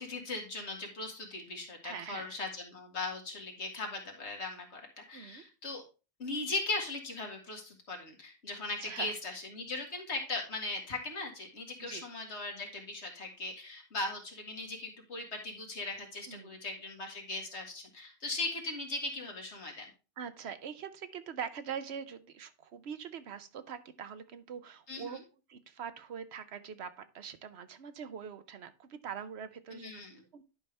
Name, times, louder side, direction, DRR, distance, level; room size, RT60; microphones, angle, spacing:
voice 1, 0.0-5.8 6.2-19.9 24.9-25.2 29.7-30.2, left 3 dB, 75° left, 2 dB, 2.1 m, -39 dB
voice 2, 1.8-2.3 5.1-5.4 8.8-9.1 11.8-12.0 16.3-16.6 20.2-25.2 25.5-29.9 30.3-30.4, right 7 dB, 70° right, 12 dB, 1.0 m, -43 dB
10.5 x 5.5 x 3.3 m, 0.32 s
omnidirectional pair, 1.2 m